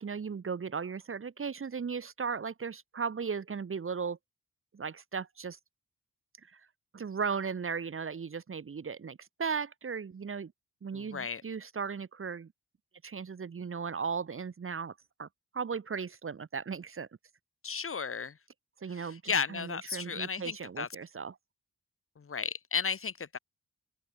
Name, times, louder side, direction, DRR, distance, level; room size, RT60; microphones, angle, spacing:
voice 1, 0.0-4.2 4.7-5.6 6.5-6.6 6.9-10.5 10.8-12.5 13.0-15.3 15.5-17.1 18.8-21.3, right 5 dB, 40° right, 1.8 m, -36 dB
voice 2, 10.9-11.4 17.6-18.4 18.9-20.9 22.2-23.4, left 5 dB, 45° left, 2.9 m, -34 dB
open air
wide cardioid pair, 145°, 32 cm